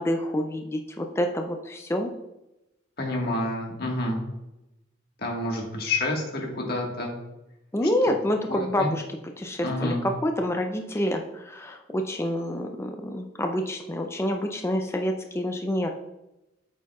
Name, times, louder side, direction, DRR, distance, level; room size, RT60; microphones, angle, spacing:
voice 1, 0.0-2.1 7.7-9.0 9.4-15.9, left 1 dB, 15° left, 4 dB, 0.4 m, -27 dB
voice 2, 3.0-4.2 5.2-7.1 8.5-8.9 9.6-10.0, left 2 dB, 55° left, 0 dB, 1.6 m, -28 dB
8.6 x 7.3 x 2.3 m, 0.94 s
head